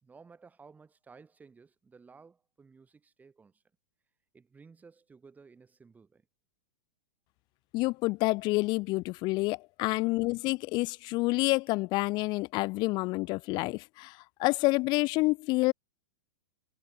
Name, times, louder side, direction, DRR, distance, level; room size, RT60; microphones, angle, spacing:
voice 1, 0.0-3.6 4.3-6.3 9.9-10.2, right 5 dB, 15° right, 2.9 m, -56 dB
voice 2, 7.7-15.7, left 23 dB, 35° left, 0.7 m, -28 dB
hypercardioid pair, 110°, 12 cm